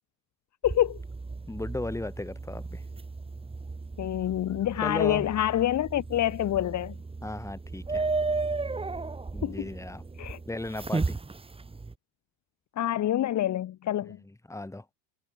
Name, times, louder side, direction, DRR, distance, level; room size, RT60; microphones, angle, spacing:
voice 1, 0.6-1.0 4.0-6.9 9.4-9.7 10.2-10.4 12.8-14.2, left 12 dB, 35° left, 1.6 m, -27 dB
sound 1, 0.6-11.9, right 3 dB, 10° right, 2.2 m, -35 dB
voice 2, 1.5-2.8 4.8-5.3 7.2-8.1 9.3-10.0 10.5-11.2 14.5-14.9, left 2 dB, 5° left, 3.5 m, -35 dB
supercardioid pair, 110°, 47 cm